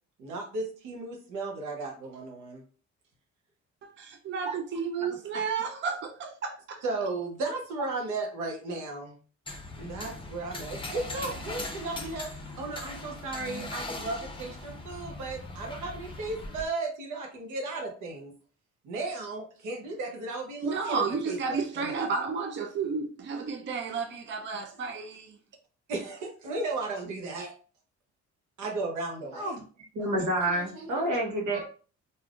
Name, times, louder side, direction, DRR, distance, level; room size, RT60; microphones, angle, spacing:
voice 1, 0.2-2.6 6.8-9.2 9.8-18.3 18.8-22.1 25.9-27.5 28.6-29.6 30.0-30.3 30.5-31.1 31.5-31.6, right 3 dB, 90° right, 0.9 m, -35 dB
voice 2, 3.8-6.8 20.6-25.4, right 5 dB, 40° right, 0.5 m, -32 dB
sound 1, 9.5-16.7, left 2 dB, 15° left, 0.7 m, -40 dB
voice 3, 29.9-31.6, right 1 dB, 75° right, 1.3 m, -29 dB
3.3 x 2.6 x 2.4 m
cardioid pair, 90°, 30 cm